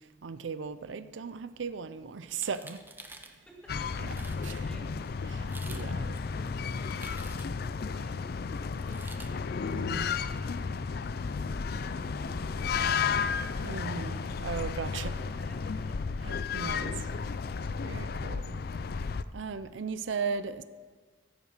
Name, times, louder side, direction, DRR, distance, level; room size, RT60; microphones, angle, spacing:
voice 1, 0.2-2.8 4.4-4.7 5.3-6.1 9.7-10.1 13.6-15.2 16.2-17.0 17.8-18.6 19.3-20.6, right 5 dB, 90° right, 0.5 m, -37 dB
sound 1, 2.3-3.4 3.9-4.0 4.1-4.6 5.4-5.9 6.2-7.7 8.8-9.3, right 3 dB, 10° right, 0.8 m, -48 dB
voice 2, 3.5-13.3 13.6-14.4 14.7-16.4, equal, 5° left, 2.3 m, -55 dB
sound 2, 3.7-19.2, left 5 dB, 55° left, 0.4 m, -33 dB
14.5 x 7.9 x 6.6 m
head